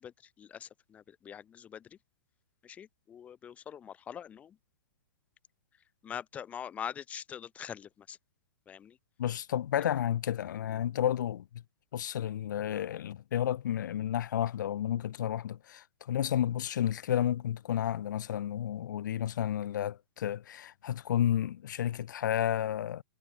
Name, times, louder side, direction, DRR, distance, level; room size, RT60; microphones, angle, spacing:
voice 1, 0.4-1.8 2.6-4.6 6.0-8.2 8.7-8.9, left 8 dB, 10° left, 1.8 m, -43 dB
voice 2, 9.2-11.6 11.9-23.0, left 10 dB, 55° left, 7.0 m, -31 dB
hypercardioid pair, 170°, 12 cm